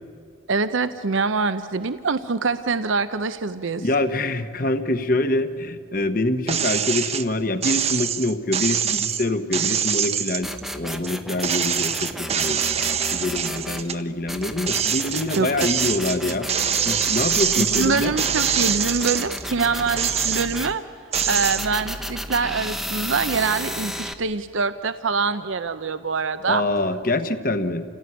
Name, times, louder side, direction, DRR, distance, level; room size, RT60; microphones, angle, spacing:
voice 1, 0.5-3.8 15.4-15.5 17.6-20.8 21.3-26.6, right 4 dB, 75° right, 11 dB, 0.7 m, -24 dB
voice 2, 3.8-16.5 16.8-18.1 26.5-27.8, left 2 dB, 45° left, 9 dB, 1.2 m, -25 dB
sound 1, 6.5-7.2 7.6-11.1 11.4-14.0 14.4-19.4 19.9-20.7 21.1-21.7, right 8 dB, 30° right, 0.7 m, -24 dB
sound 2, 10.4-13.9 14.3-20.7 21.1-24.1, equal, ahead, 0.9 m, -32 dB
28.5 x 17.0 x 9.9 m, 2.3 s
head